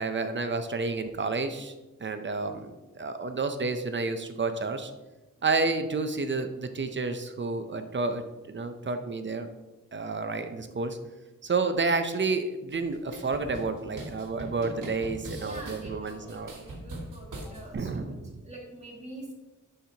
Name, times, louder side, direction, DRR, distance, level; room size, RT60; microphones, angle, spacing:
voice 1, 0.0-1.7 2.0-4.9 5.4-9.5 9.9-11.0 11.4-16.5 17.7-18.3, right 3 dB, 35° right, 8 dB, 0.5 m, -30 dB
sound 1, 12.7-17.7, right 1 dB, 75° right, 1.6 m, -42 dB
voice 2, 15.4-19.3, right 1 dB, 20° right, -4 dB, 1.9 m, -45 dB
10.0 x 4.4 x 2.8 m, 1.1 s
wide cardioid pair, 155°, 32 cm